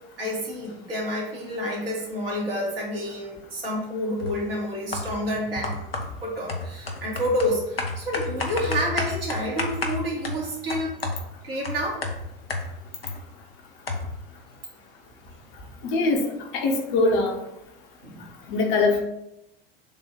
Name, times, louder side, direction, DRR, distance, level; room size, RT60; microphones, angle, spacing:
voice 1, 0.2-5.8 6.2-11.0 11.4-12.0 18.0-18.2, equal, 75° right, -4 dB, 2.1 m, -29 dB
sound 1, 4.2-4.5 4.9-5.3 5.6-13.3 13.5-13.6 13.9-14.3, left 3 dB, 80° left, 0.9 m, -31 dB
voice 2, 15.8-16.2 16.5-17.4 18.5-19.0, left 3 dB, 40° left, 2 dB, 1.3 m, -22 dB
7.0 x 2.7 x 5.1 m, 0.83 s
figure-of-eight pair, 80°, 29 cm